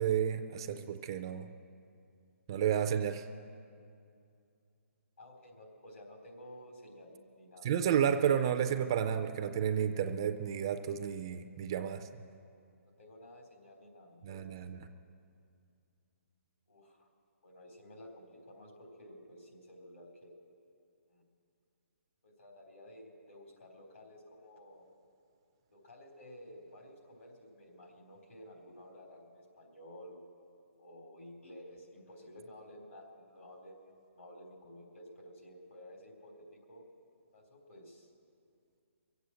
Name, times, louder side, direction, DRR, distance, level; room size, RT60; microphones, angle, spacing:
voice 1, 0.0-1.5 2.5-3.3 7.6-12.1 14.2-14.8, right 8 dB, 20° right, 8 dB, 0.3 m, -31 dB
voice 2, 5.2-7.7 12.9-14.4 16.7-17.1 17.4-20.4 21.1-21.2 22.2-24.8 25.7-30.2 30.8-36.8 37.3-38.1, left 1 dB, 75° left, 1 dB, 3.9 m, -53 dB
23.0 x 8.2 x 7.7 m, 2.4 s
hypercardioid pair, 175°, 8 cm